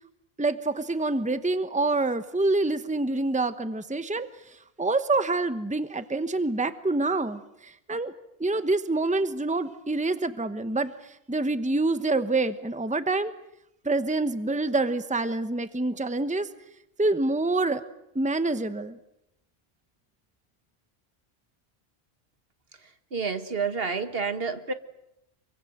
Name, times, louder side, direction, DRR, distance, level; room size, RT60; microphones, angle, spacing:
voice 1, 0.4-8.1 8.4-13.3 13.8-16.5 17.0-17.8 18.1-19.0, right 2 dB, 5° right, 1.1 m, -26 dB
voice 2, 23.1-24.7, right 5 dB, 65° right, 1.8 m, -29 dB
27.0 x 24.0 x 7.9 m
omnidirectional pair, 1.1 m